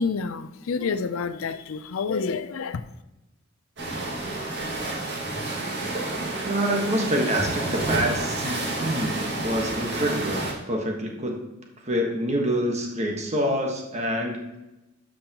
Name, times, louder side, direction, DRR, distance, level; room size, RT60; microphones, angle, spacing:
voice 1, 0.0-2.8, left 5 dB, 70° left, 0.5 m, -28 dB
sound 1, 3.8-10.5, right 2 dB, 55° right, 2.0 m, -29 dB
voice 2, 6.4-11.4 11.9-14.4, equal, 30° right, 1.4 m, -26 dB
12.0 x 5.3 x 3.0 m
head